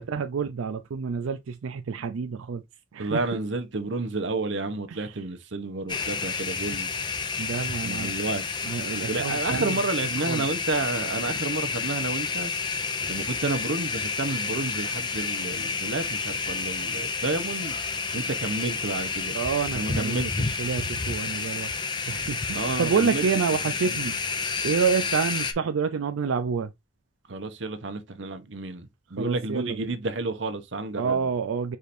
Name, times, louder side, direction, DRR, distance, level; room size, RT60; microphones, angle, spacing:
voice 1, 0.0-2.6 2.9-3.4 4.9-5.2 7.4-8.2 8.6-9.8 10.3-10.5 19.3-20.2 20.6-21.7 22.1-24.2 24.6-26.7 29.2-29.9 31.0-31.8, right 6 dB, 90° right, 0.4 m, -28 dB
voice 2, 3.0-7.0 7.8-8.4 9.1-12.5 13.1-17.8 18.1-19.4 19.7-20.6 22.5-23.2 23.9-24.0 27.3-31.3, right 3 dB, 65° right, 0.9 m, -30 dB
sound 1, 5.9-25.5, left 4 dB, 20° left, 0.5 m, -30 dB
5.0 x 2.6 x 4.2 m
head